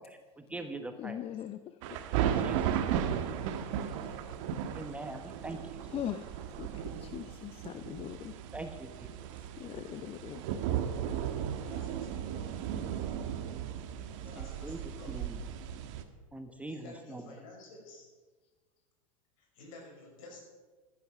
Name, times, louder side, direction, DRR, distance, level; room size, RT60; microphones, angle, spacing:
voice 1, 0.0-1.2 2.2-3.1 4.7-5.6 8.5-9.1 14.3-14.8 15.1-15.4 16.3-17.2, right 2 dB, 5° right, 6 dB, 1.2 m, -43 dB
voice 2, 1.0-1.8 3.6-4.4 5.9-8.3 9.6-10.4, left 11 dB, 30° left, 11 dB, 0.6 m, -41 dB
sound 1, 1.8-16.0, right 9 dB, 60° right, 1.4 m, -35 dB
voice 3, 11.5-12.7 14.0-15.2 16.7-18.1 19.4-20.5, left 3 dB, 65° left, 0 dB, 5.7 m, -52 dB
15.5 x 9.3 x 6.1 m, 1.3 s
hypercardioid pair, 95°, 18 cm